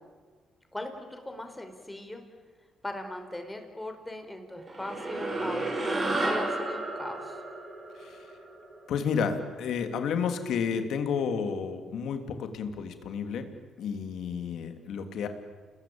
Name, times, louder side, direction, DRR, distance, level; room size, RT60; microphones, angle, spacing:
voice 1, 0.7-2.2 2.8-7.4, left 1 dB, 10° left, 6 dB, 4.8 m, -39 dB
sound 1, 4.7-9.3, right 2 dB, 35° right, 7.0 m, -32 dB
voice 2, 8.0-8.3 8.9-13.5 13.8-15.3, left 6 dB, 75° left, 8 dB, 3.0 m, -31 dB
29.5 x 21.0 x 8.9 m, 1.4 s
cardioid pair, 90°, 0 cm